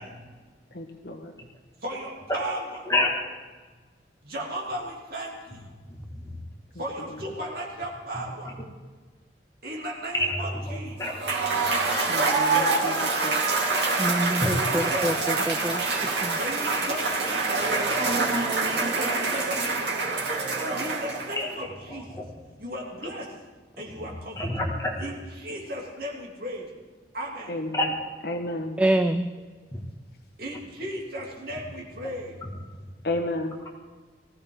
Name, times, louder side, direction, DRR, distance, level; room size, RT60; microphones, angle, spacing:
voice 1, 0.7-1.3 7.0-7.2 12.1-13.4 27.5-27.9 28.2-28.8 33.0-33.5, left 1 dB, 60° left, 4 dB, 1.6 m, -32 dB
voice 2, 1.8-2.8 4.2-5.7 6.7-8.6 9.6-11.0 12.5-13.2 14.4-15.2 16.4-18.1 18.9-20.0 20.8-22.2 22.6-23.3 23.8-24.5 25.0-26.7 27.1-27.6 30.4-32.4, right 1 dB, 55° right, -2 dB, 3.2 m, -36 dB
voice 3, 5.9-6.4 8.4-8.5 10.1-11.2 21.4-21.5 21.9-22.3 24.0-24.1 24.4-24.9 27.7-27.9 29.7-29.8, left 1 dB, 15° left, -1 dB, 2.4 m, -28 dB
Cheering / Applause / Crowd, 11.0-21.5, right 3 dB, 80° right, 2.8 m, -26 dB
voice 4, 14.0-16.4 28.8-29.3, right 1 dB, 5° right, 8 dB, 0.4 m, -26 dB
19.5 x 15.5 x 4.0 m, 1.4 s
head